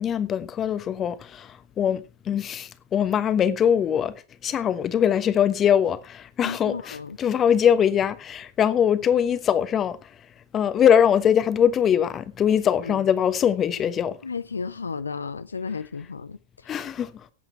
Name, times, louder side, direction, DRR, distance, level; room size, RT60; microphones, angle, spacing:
voice 1, 0.0-4.1 4.4-10.1 10.5-14.2 16.7-17.2, left 8 dB, 25° left, 1.2 m, -22 dB
voice 2, 6.4-7.2 12.8-13.0 14.2-16.7, left 5 dB, 75° left, 0.5 m, -33 dB
17.0 x 8.0 x 4.5 m
figure-of-eight pair, 90°, 0 cm